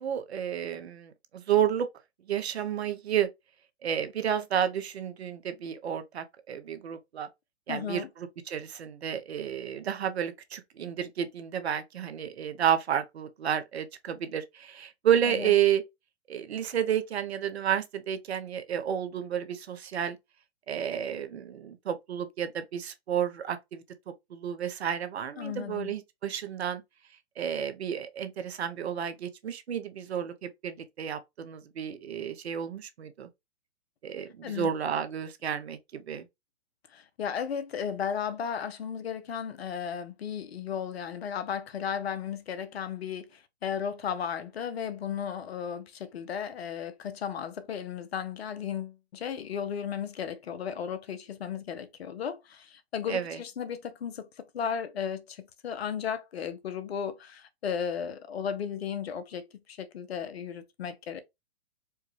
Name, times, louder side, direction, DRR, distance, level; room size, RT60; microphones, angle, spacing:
voice 1, 0.0-1.9 2.3-3.3 3.8-7.3 7.7-15.8 16.3-20.2 20.7-23.8 24.3-26.8 27.4-33.3 34.0-36.3 53.1-53.4, right 9 dB, 75° right, 0.8 m, -31 dB
voice 2, 7.7-8.1 15.3-15.5 25.4-25.9 34.4-34.7 36.9-61.2, left 7 dB, 70° left, 0.8 m, -35 dB
4.5 x 2.3 x 3.1 m
hypercardioid pair, 130°, 33 cm